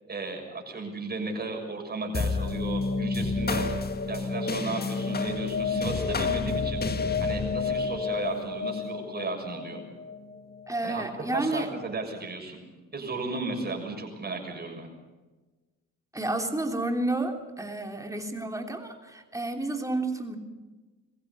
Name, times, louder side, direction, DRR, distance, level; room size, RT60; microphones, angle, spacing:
voice 1, 0.1-3.7 4.1-6.8 7.2-9.8 10.8-11.0 11.3-12.6 12.9-14.9, right 3 dB, 30° right, 2 dB, 6.6 m, -35 dB
sound 1, 2.1-10.9, left 4 dB, 30° left, 1.8 m, -29 dB
voice 2, 10.7-11.7 16.1-20.4, right 2 dB, 10° right, 3 dB, 3.2 m, -30 dB
22.5 x 15.5 x 8.3 m, 1.2 s
cardioid pair, 90°, 30 cm